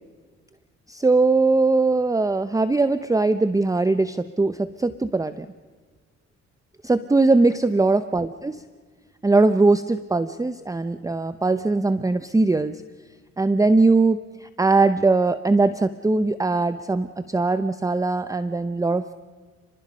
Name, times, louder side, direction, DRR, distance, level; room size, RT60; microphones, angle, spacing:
voice 1, 0.9-5.5 6.9-8.6 9.2-12.8 13.4-19.1, right 3 dB, 10° right, 12 dB, 0.7 m, -20 dB
29.5 x 21.0 x 5.5 m, 1.5 s
cardioid pair, 90°, 30 cm